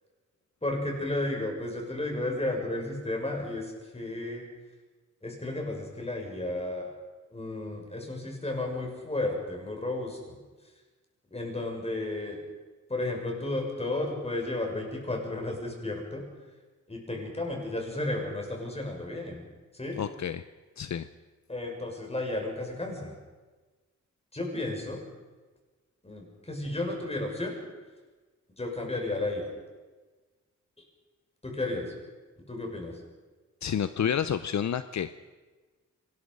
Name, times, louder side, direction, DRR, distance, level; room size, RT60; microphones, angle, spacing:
voice 1, 0.6-4.4 5.2-6.9 7.3-10.4 11.3-12.4 12.9-16.3 16.9-19.4 19.7-20.0 21.5-23.1 24.3-25.0 26.0-27.5 28.6-29.5 31.4-31.9 32.5-32.9, left 2 dB, 20° left, 1 dB, 6.0 m, -33 dB
voice 2, 19.9-20.4 20.8-21.1 33.6-35.1, left 8 dB, 70° left, 12 dB, 0.7 m, -29 dB
26.0 x 20.0 x 5.4 m, 1.3 s
wide cardioid pair, 115°, 30 cm